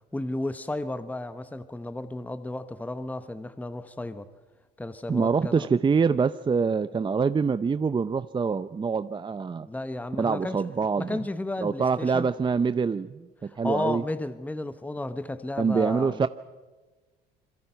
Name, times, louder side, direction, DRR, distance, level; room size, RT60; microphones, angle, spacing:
voice 1, 0.1-4.3 4.8-5.7 9.6-10.6 11.0-12.3 13.4-16.3, left 2 dB, 10° left, 1.2 m, -33 dB
voice 2, 5.1-9.7 10.2-11.2 11.6-14.0 15.6-16.3, right 5 dB, 25° right, 0.6 m, -25 dB
27.5 x 22.5 x 5.8 m
supercardioid pair, 80°, 20 cm